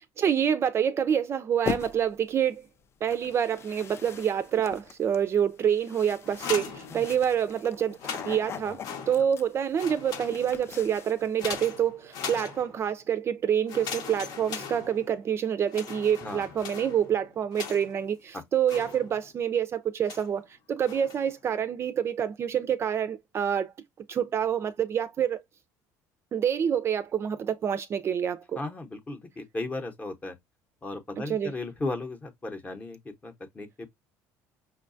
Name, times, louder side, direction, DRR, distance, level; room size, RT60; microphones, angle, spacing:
voice 1, 0.2-2.7 3.0-8.0 8.2-23.7 24.1-25.4 26.3-28.6 31.3-31.5, right 8 dB, 35° right, 0.4 m, -27 dB
sound 1, 1.6-2.2 3.1-11.6, left 8 dB, 35° left, 0.3 m, -40 dB
sound 2, 6.2-7.5 7.9-9.5 9.7-10.7 11.4-13.0 13.7-15.3 15.7-18.1 18.7-19.4 20.1-20.4 20.8-21.3, left 6 dB, 65° left, 0.8 m, -40 dB
voice 2, 28.6-30.3 30.8-33.9, left 2 dB, 20° left, 0.8 m, -36 dB
5.4 x 2.2 x 2.5 m
cardioid pair, 120°, 7 cm